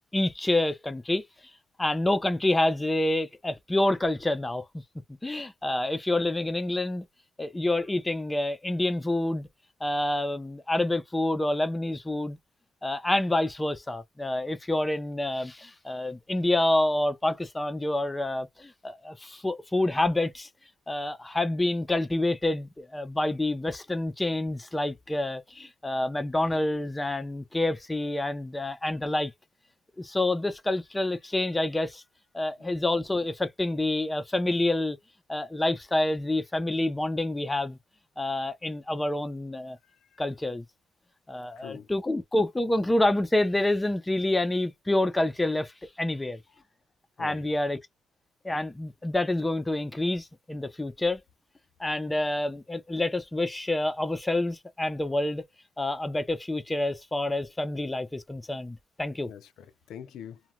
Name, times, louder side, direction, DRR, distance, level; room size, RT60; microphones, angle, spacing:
voice 1, 0.1-1.2 1.8-4.6 5.2-7.1 7.4-9.5 9.8-12.4 12.8-20.5 20.9-29.3 30.0-32.0 32.3-35.0 35.3-37.8 38.2-39.8 40.2-40.6 41.3-46.4 47.2-47.8 48.4-51.2 51.8-55.4 55.8-59.3, left 1 dB, 15° left, 0.6 m, -28 dB
voice 2, 39.8-40.2 41.6-41.9 47.2-47.5 59.3-60.4, left 9 dB, 75° left, 0.5 m, -45 dB
2.4 x 2.2 x 2.9 m
cardioid pair, 90°, 0 cm